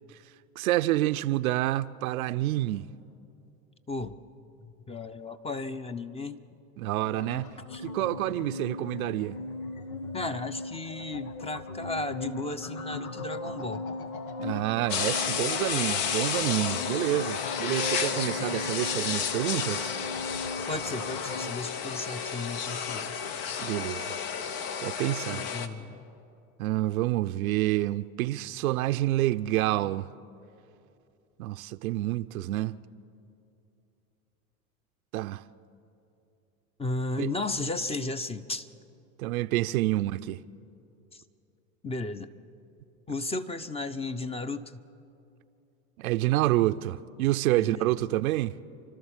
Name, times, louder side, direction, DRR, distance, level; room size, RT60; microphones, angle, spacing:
voice 1, 0.6-2.9 6.8-7.5 7.8-9.4 14.4-19.9 23.6-24.2 24.8-25.4 26.6-30.1 31.4-32.8 35.1-35.4 37.2-37.3 39.2-40.4 46.0-48.6, right 16 dB, 80° right, 0.6 m, -28 dB
voice 2, 4.9-6.4 7.7-7.8 10.1-13.9 20.7-23.2 25.3-26.0 36.8-38.7 41.1-41.2 41.8-42.3 43.1-44.8 47.5-48.0, left 2 dB, 15° left, 0.7 m, -34 dB
sound 1, 7.0-21.5, left 2 dB, 90° left, 1.3 m, -38 dB
sound 2, 14.9-25.7, left 7 dB, 60° left, 1.3 m, -32 dB
29.5 x 12.5 x 7.3 m
hypercardioid pair, 90°, 42 cm